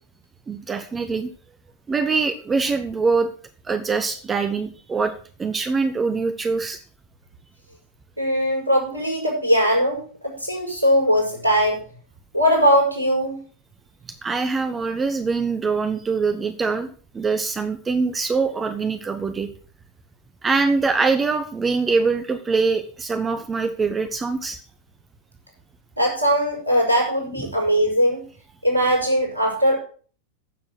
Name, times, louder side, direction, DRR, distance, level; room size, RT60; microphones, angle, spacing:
voice 1, 0.5-1.3 1.9-3.3 3.6-5.1 5.4-6.8 14.2-19.5 20.4-24.6 27.4-27.5, right 4 dB, 15° right, 9 dB, 1.2 m, -23 dB
voice 2, 8.2-11.8 12.3-13.4 26.0-28.2 28.6-29.8, equal, 80° right, 0 dB, 6.3 m, -20 dB
14.0 x 7.5 x 5.9 m, 0.41 s
figure-of-eight pair, 90°, 0 cm